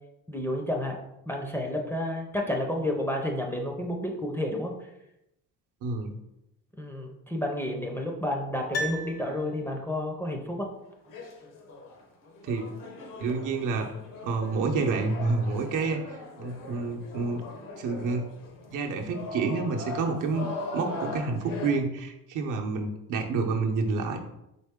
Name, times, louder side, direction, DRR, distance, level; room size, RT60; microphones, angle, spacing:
voice 1, 0.3-1.0 1.3-4.7 6.8-10.7, left 1 dB, 5° left, 1 dB, 0.5 m, -30 dB
voice 2, 5.8-6.1 12.4-12.7 13.2-13.9 14.2-16.0 16.4-17.4 17.8-18.3 18.7-24.2, right 4 dB, 65° right, 2 dB, 0.8 m, -28 dB
Piano, 8.7-10.0 10.3-10.4, equal, 50° left, 0.8 m, -35 dB
sound 1, 10.8-21.7, left 3 dB, 70° left, 1.1 m, -40 dB
4.2 x 3.5 x 3.6 m, 0.86 s
cardioid pair, 130°, 33 cm